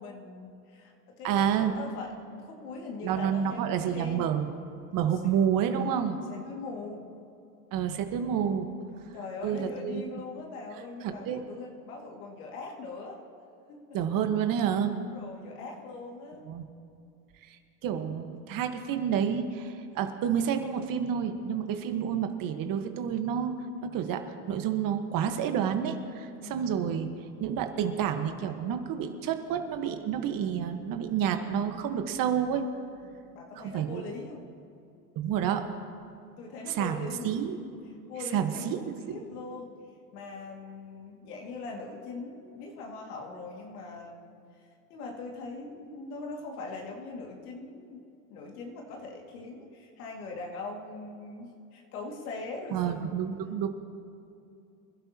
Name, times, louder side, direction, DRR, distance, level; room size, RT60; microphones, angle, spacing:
voice 1, 0.0-4.3 5.1-5.2 5.7-6.0 6.3-7.1 9.1-13.2 13.7-13.9 15.0-16.5 26.3-26.8 28.5-28.6 33.0-34.4 36.4-37.5 38.1-39.7 40.1-44.6 44.9-48.0 48.3-53.1 53.5-53.6, left 3 dB, 75° left, 0 dB, 2.3 m, -41 dB
voice 2, 1.2-1.7 3.0-4.5 4.9-6.2 7.7-8.7 9.4-10.0 11.0-11.4 13.9-14.9 16.5-16.6 17.4-27.1 27.4-32.7 33.6-34.0 35.1-35.7 36.7-37.6 38.3-39.2 52.7-53.7, right 8 dB, 45° right, 6 dB, 1.4 m, -29 dB
26.0 x 11.5 x 2.9 m, 2.6 s
hypercardioid pair, 100°, 46 cm